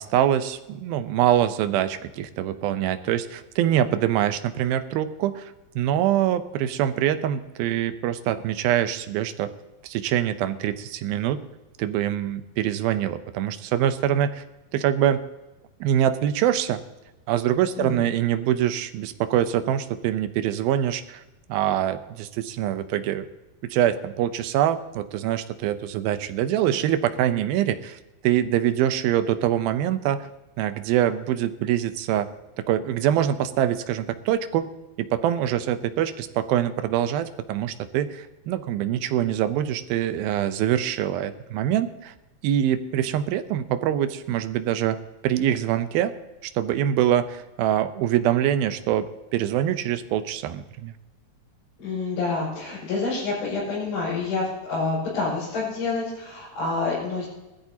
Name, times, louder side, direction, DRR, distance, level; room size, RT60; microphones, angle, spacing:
voice 1, 0.0-9.5 9.8-11.4 11.8-14.4 14.7-15.2 15.8-16.8 17.3-21.2 21.5-23.3 23.6-30.3 30.6-32.3 32.6-34.7 35.0-42.1 42.4-46.1 46.4-50.9, right 11 dB, 85° right, 11 dB, 2.6 m, -24 dB
voice 2, 51.8-57.3, left 3 dB, 80° left, -9 dB, 7.9 m, -28 dB
20.5 x 13.5 x 2.9 m, 1.0 s
omnidirectional pair, 4.2 m